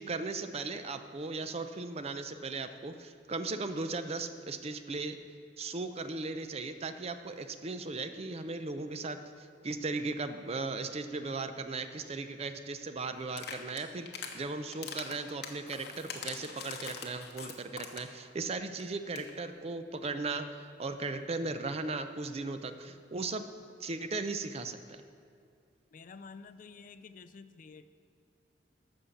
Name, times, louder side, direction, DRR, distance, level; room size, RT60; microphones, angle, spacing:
voice 1, 0.0-5.2 5.6-14.1 14.3-20.5 20.8-23.4 23.8-25.0, right 3 dB, 35° right, 9 dB, 0.5 m, -37 dB
sound 1, 13.3-14.4 14.7-18.2 18.5-18.6 18.8-18.9 19.1-19.3, left 6 dB, 60° left, 1.1 m, -42 dB
voice 2, 25.9-27.9, left 4 dB, 45° left, 12 dB, 0.4 m, -50 dB
13.0 x 5.5 x 7.1 m, 2.3 s
head